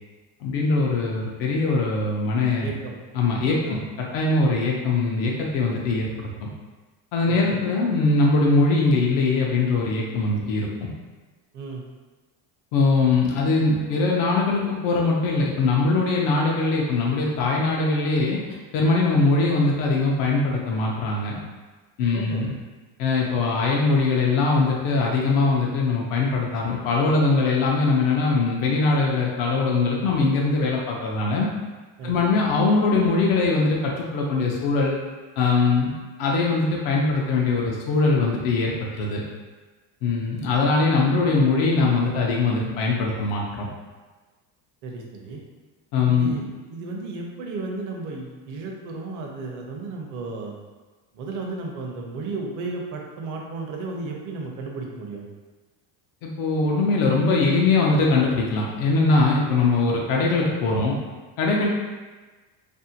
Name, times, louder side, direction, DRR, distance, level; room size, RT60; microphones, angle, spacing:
voice 1, 0.4-2.7 3.1-6.5 7.1-10.9 12.7-18.4 18.7-21.4 22.0-22.5 23.0-31.5 32.0-35.0 35.4-39.2 40.0-43.7 45.9-46.3 56.2-61.0 61.4-61.7, left 3 dB, 80° left, -2 dB, 0.6 m, -21 dB
voice 2, 2.6-2.9 3.6-3.8 7.3-7.6 11.5-11.8 22.1-22.5 32.0-32.4 44.8-45.4 46.0-46.5 46.7-50.5 51.1-55.2, right 3 dB, 40° right, 0 dB, 0.5 m, -34 dB
2.6 x 2.1 x 2.7 m, 1.3 s
cardioid pair, 130°, 46 cm